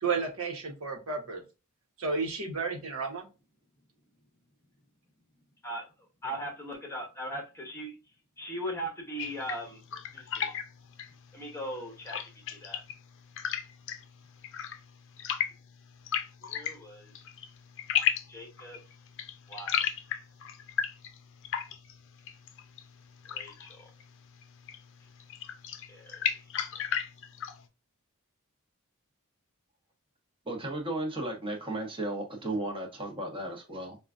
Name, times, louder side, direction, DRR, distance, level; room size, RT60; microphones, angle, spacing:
voice 1, 0.0-1.4 2.0-3.3, right 4 dB, 65° right, 2 dB, 1.1 m, -32 dB
voice 2, 6.2-8.0 8.4-9.8 10.1-10.5 11.3-12.8 16.4-17.1 18.3-18.8 19.5-19.8 23.3-23.9 25.9-26.4, equal, 10° left, 1 dB, 1.0 m, -39 dB
sound 1, 9.2-27.7, left 9 dB, 60° left, 0.5 m, -36 dB
voice 3, 30.5-34.0, right 1 dB, 25° right, 2 dB, 1.0 m, -34 dB
5.4 x 2.3 x 2.4 m, 0.30 s
head